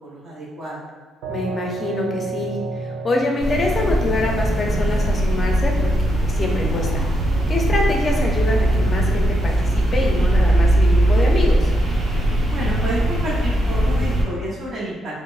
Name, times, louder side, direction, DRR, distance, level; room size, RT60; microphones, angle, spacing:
voice 1, 0.0-0.8 12.5-15.2, right 1 dB, 30° right, -7 dB, 0.9 m, -30 dB
sound 1, 1.2-14.2, right 3 dB, 85° right, 0.4 m, -36 dB
voice 2, 1.3-2.6 2.8-7.0 7.5-11.7, left 2 dB, 25° left, 0 dB, 0.5 m, -25 dB
sound 2, 3.4-14.2, right 1 dB, 50° right, 1.1 m, -19 dB
4.4 x 2.0 x 2.4 m, 1.4 s
cardioid pair, 145°, 0 cm